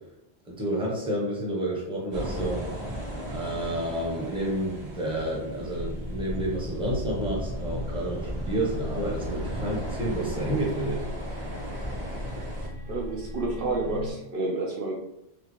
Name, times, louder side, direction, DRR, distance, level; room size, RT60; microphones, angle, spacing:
voice 1, 0.5-2.6 3.3-11.0, right 1 dB, 5° right, -3 dB, 0.8 m, -30 dB
sound 1, 2.1-12.7, equal, 80° right, 1.2 m, -36 dB
sound 2, 5.7-14.1, left 1 dB, 35° right, 1.3 m, -38 dB
voice 2, 12.9-15.0, right 2 dB, 65° right, -1 dB, 0.8 m, -30 dB
3.9 x 2.8 x 3.1 m, 0.83 s
omnidirectional pair, 1.1 m